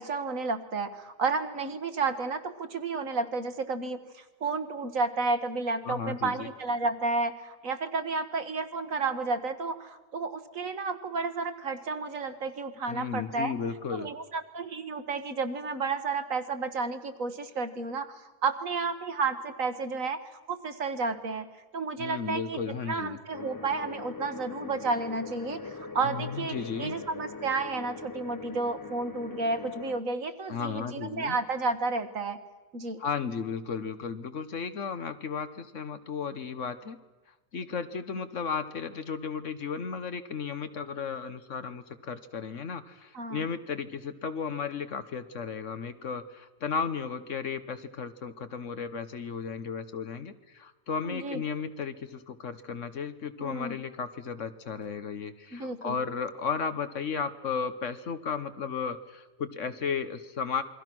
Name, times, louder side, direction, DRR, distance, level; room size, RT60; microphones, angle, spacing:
voice 1, 0.0-13.5 13.9-20.2 20.5-21.5 21.7-32.4 32.7-33.0 43.1-43.5 51.0-51.4 53.4-53.8 55.5-56.0, right 3 dB, 60° right, 9 dB, 1.7 m, -32 dB
voice 2, 5.8-6.5 12.9-14.1 22.0-23.2 26.0-27.0 30.5-31.4 33.0-37.0 37.5-60.6, left 6 dB, 55° left, 11 dB, 1.3 m, -34 dB
sound 1, 23.3-30.0, left 4 dB, 30° left, 0.4 m, -41 dB
28.0 x 22.0 x 6.1 m, 1.2 s
omnidirectional pair, 1.6 m